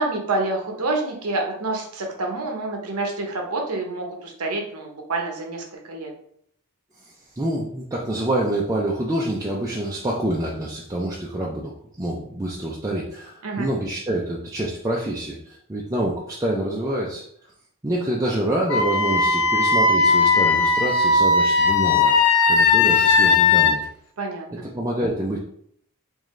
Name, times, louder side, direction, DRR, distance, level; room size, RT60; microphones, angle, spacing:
voice 1, 0.0-6.1 13.4-13.7 24.2-24.6, right 2 dB, 80° right, 2 dB, 0.9 m, -27 dB
voice 2, 7.0-17.2 17.8-22.1 22.5-23.8 24.6-25.4, right 1 dB, 15° right, -3 dB, 0.4 m, -26 dB
Wind instrument woodwind instrument, 18.7-23.7, left 4 dB, 70° left, 0.5 m, -18 dB
3.8 x 3.1 x 3.1 m, 0.67 s
head